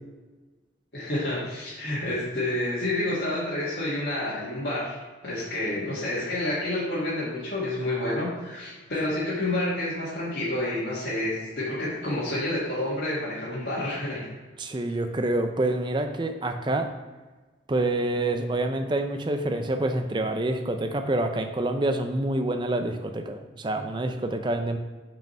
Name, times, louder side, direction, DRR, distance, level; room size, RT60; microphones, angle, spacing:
voice 1, 0.9-5.0 5.2-14.3, left 1 dB, 60° left, -10 dB, 1.9 m, -29 dB
voice 2, 14.6-16.9 17.7-24.8, right 2 dB, 25° right, 6 dB, 0.5 m, -27 dB
5.6 x 5.2 x 4.4 m, 1.3 s
head